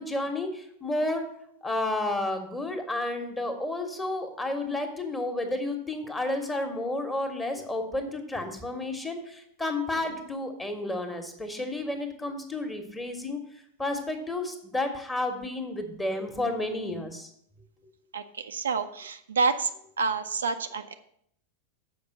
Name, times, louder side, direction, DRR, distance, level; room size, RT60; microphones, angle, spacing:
voice 1, 0.0-1.3 1.6-13.4 13.8-17.3, left 2 dB, 10° left, 5 dB, 1.3 m, -31 dB
voice 2, 18.1-19.7 20.0-20.9, right 4 dB, 70° right, 8 dB, 0.5 m, -28 dB
7.2 x 5.1 x 7.2 m, 0.70 s
figure-of-eight pair, 90°, 0 cm